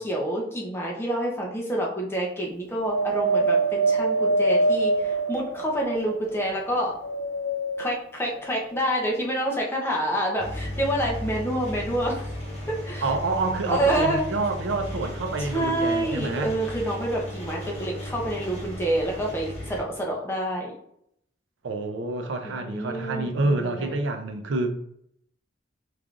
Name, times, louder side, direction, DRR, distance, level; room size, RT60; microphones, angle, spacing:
voice 1, 0.0-7.0 7.8-12.2 12.7-13.1 13.7-14.3 15.4-20.7 22.4-23.9, right 1 dB, 15° left, 0.6 m, -28 dB
Wind, 2.8-6.4 7.0-8.0 8.8-8.9, right 2 dB, 80° left, 0.6 m, -24 dB
Engine, 10.4-19.8, left 1 dB, 35° left, 1.1 m, -35 dB
voice 2, 13.0-16.5 21.6-24.7, right 3 dB, 80° right, 0.5 m, -27 dB
3.6 x 3.2 x 2.4 m
head